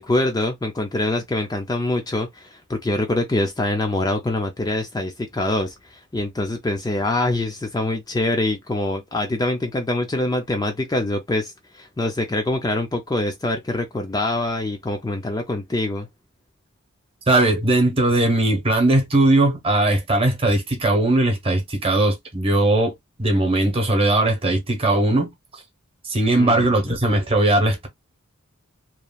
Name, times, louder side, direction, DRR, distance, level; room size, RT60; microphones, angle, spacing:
voice 1, 0.0-16.1 26.4-26.7, left 2 dB, 20° left, 0.4 m, -24 dB
voice 2, 17.3-25.6 26.0-27.9, right 2 dB, 25° right, 0.9 m, -19 dB
3.0 x 2.4 x 2.3 m
head